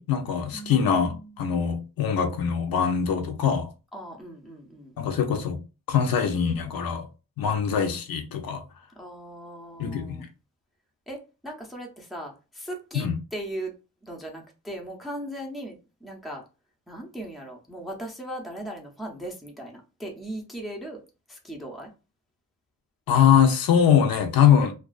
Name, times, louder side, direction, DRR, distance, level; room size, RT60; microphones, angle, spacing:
voice 1, 0.0-3.7 5.0-5.6 5.9-7.0 7.4-8.6 9.8-10.3 12.9-13.2 23.1-24.7, left 8 dB, 70° left, 0.6 m, -22 dB
voice 2, 0.5-1.3 3.9-5.0 7.4-7.5 9.0-10.3 11.1-13.7 14.0-16.4 16.9-21.0 21.3-21.9, right 1 dB, ahead, 0.5 m, -38 dB
2.3 x 2.2 x 2.3 m
wide cardioid pair, 125°, 37 cm